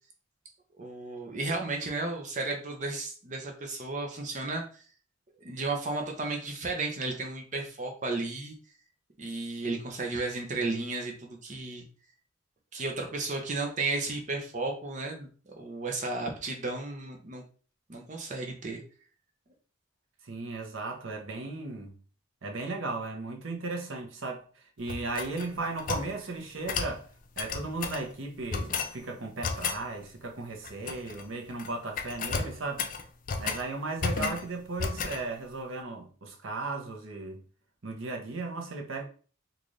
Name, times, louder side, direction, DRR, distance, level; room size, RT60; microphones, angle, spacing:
voice 1, 0.8-4.8 5.4-8.5 9.2-11.8 12.7-17.4 17.9-18.8, right 3 dB, 35° right, 0.7 m, -33 dB
voice 2, 20.2-22.0 22.4-27.1 27.4-32.9 33.4-37.4 37.8-39.0, right 3 dB, 75° right, 0.8 m, -36 dB
sound 1, 24.9-26.1 26.7-27.0 27.4-28.0 28.5-28.9 29.4-29.8 30.6-31.2 31.5-31.7 32.0-33.6 34.0-34.5 34.8-35.2, left 5 dB, 40° left, 0.4 m, -33 dB
3.9 x 2.5 x 3.1 m
head